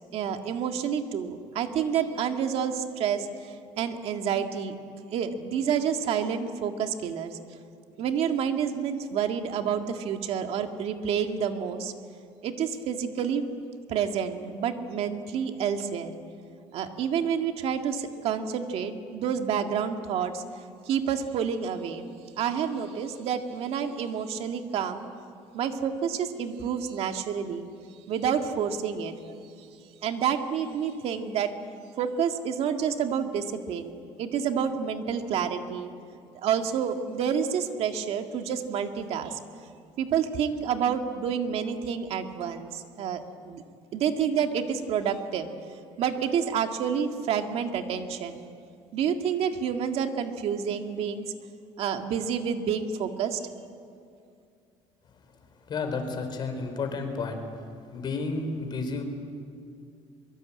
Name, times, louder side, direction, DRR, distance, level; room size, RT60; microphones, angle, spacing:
voice 1, 0.1-4.8 5.1-7.4 8.0-11.9 12.4-13.4 13.9-16.1 16.7-20.4 20.9-22.1 22.4-25.1 25.5-27.7 28.1-29.4 30.0-31.5 32.0-35.9 36.3-39.4 40.0-43.6 43.9-45.5 46.0-48.5 48.9-51.3 51.8-53.4, right 7 dB, 65° right, 5 dB, 2.0 m, -29 dB
voice 2, 55.7-57.4 57.9-59.0, left 4 dB, 45° left, 6 dB, 3.9 m, -31 dB
23.0 x 23.0 x 8.5 m, 2.4 s
cardioid pair, 140°, 11 cm